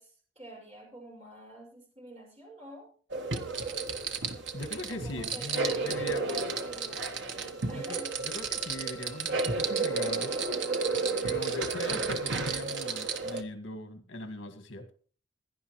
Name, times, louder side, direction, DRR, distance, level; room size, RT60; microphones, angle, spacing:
voice 1, 0.0-2.9 4.9-8.1, right 1 dB, 35° right, -3 dB, 5.5 m, -47 dB
sound 1, 3.1-13.4, right 4 dB, 65° right, 1.3 m, -32 dB
voice 2, 4.5-6.3 7.7-10.4 11.2-14.8, left 1 dB, 75° left, 7 dB, 1.8 m, -40 dB
Wind instrument woodwind instrument, 6.4-11.5, left 1 dB, 50° right, 6.5 m, -55 dB
16.5 x 11.0 x 3.1 m, 0.41 s
head